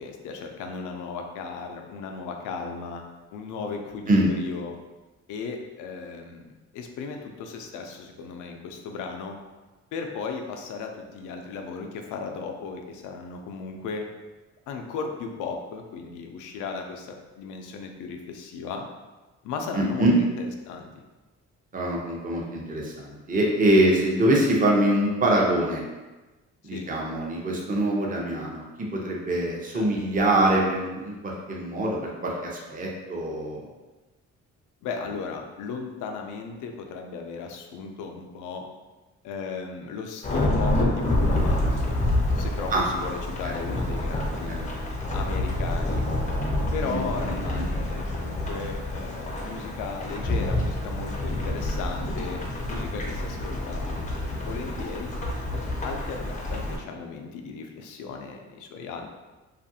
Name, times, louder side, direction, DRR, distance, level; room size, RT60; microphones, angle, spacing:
voice 1, 0.0-3.0 3.3-4.8 5.3-9.4 9.9-14.0 14.7-18.8 19.4-21.0 26.6-26.9 29.7-30.0 34.8-38.7 39.2-42.0 42.4-44.7 45.1-46.0 46.7-52.4 52.7-54.0 54.4-55.1 55.8-59.1, left 5 dB, 85° left, 3 dB, 0.5 m, -36 dB
voice 2, 19.7-20.2 21.7-25.8 26.6-33.6 42.7-42.8 43.4-43.5 44.5-44.6 46.9-47.7, right 1 dB, 30° right, -2 dB, 0.6 m, -24 dB
Thunderstorm / Rain, 40.2-56.8, left 1 dB, 25° left, 0.5 m, -28 dB
2.6 x 2.4 x 2.6 m, 1.2 s
cardioid pair, 90°, 30 cm